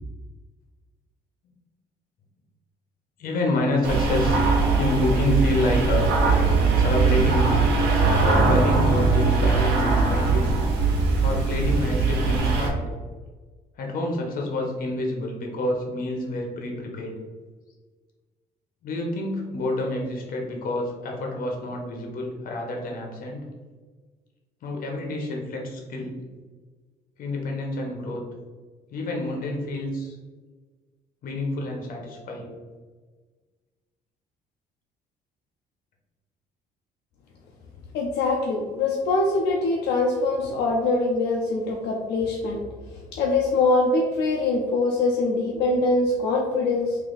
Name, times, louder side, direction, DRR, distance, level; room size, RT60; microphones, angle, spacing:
voice 1, 3.2-4.4 4.8-6.1 6.7-7.7 8.2-10.6 11.2-12.9 13.8-17.2 18.8-23.5 24.6-26.2 27.2-28.2 28.9-30.2 31.2-32.5, left 1 dB, 55° left, 0 dB, 1.1 m, -28 dB
sound 1, 3.8-12.7, right 4 dB, 80° right, 0.9 m, -21 dB
voice 2, 37.9-42.6 43.1-47.0, left 3 dB, 80° left, -1 dB, 0.6 m, -23 dB
3.3 x 2.8 x 3.9 m, 1.4 s
cardioid pair, 110°, 17 cm